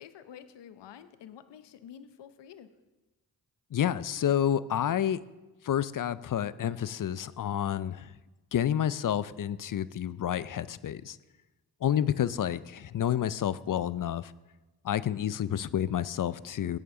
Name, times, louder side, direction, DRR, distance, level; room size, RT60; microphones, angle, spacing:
voice 1, 0.0-2.7, left 9 dB, 90° left, 12 dB, 0.8 m, -49 dB
voice 2, 3.7-5.2 5.6-8.1 8.5-11.2 11.8-14.3 14.8-16.8, left 10 dB, 50° left, 18 dB, 0.5 m, -29 dB
16.0 x 9.5 x 3.8 m, 1.1 s
cardioid pair, 50°, 41 cm